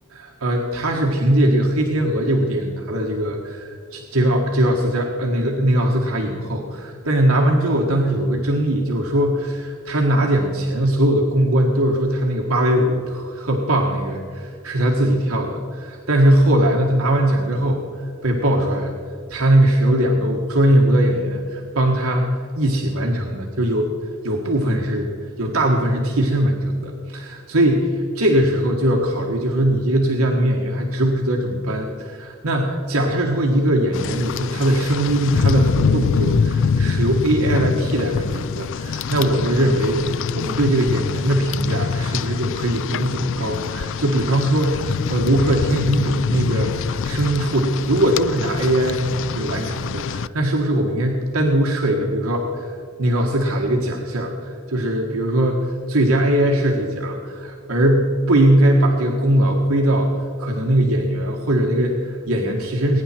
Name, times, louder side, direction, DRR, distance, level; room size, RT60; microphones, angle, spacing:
voice 1, 0.4-17.8 18.2-18.9 19.3-22.3 22.5-23.9 24.2-25.1 25.4-49.0 49.3-52.7 53.0-60.1 60.4-63.0, right 1 dB, 90° right, 0 dB, 1.6 m, -20 dB
Rain, 33.9-50.3, left 5 dB, 65° left, 0.4 m, -24 dB
21.5 x 9.8 x 4.4 m, 2.3 s
head